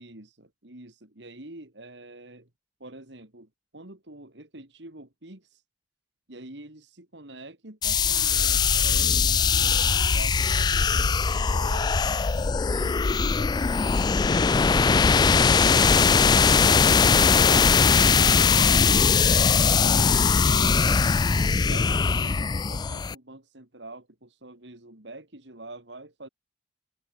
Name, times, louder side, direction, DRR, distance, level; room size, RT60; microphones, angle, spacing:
voice 1, 0.0-2.5 2.8-5.6 6.3-12.0 12.7-14.8 16.3-21.0 21.4-26.3, right 2 dB, 85° right, 3.5 m, -45 dB
sound 1, 7.8-23.1, left 5 dB, 25° left, 0.3 m, -20 dB
head